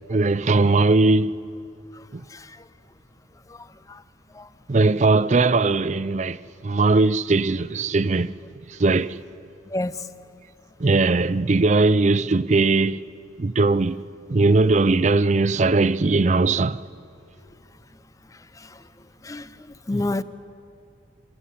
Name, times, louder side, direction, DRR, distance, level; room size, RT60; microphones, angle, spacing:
voice 1, 0.1-1.3 2.1-2.2 4.7-8.3 8.7-9.2 10.8-13.0 13.4-16.8, right 3 dB, 35° right, 0.5 m, -19 dB
voice 2, 1.9-2.7 3.5-4.0 4.3-4.5 9.7-10.1 18.3-20.2, left 2 dB, 15° left, 0.5 m, -32 dB
28.0 x 14.5 x 9.9 m
head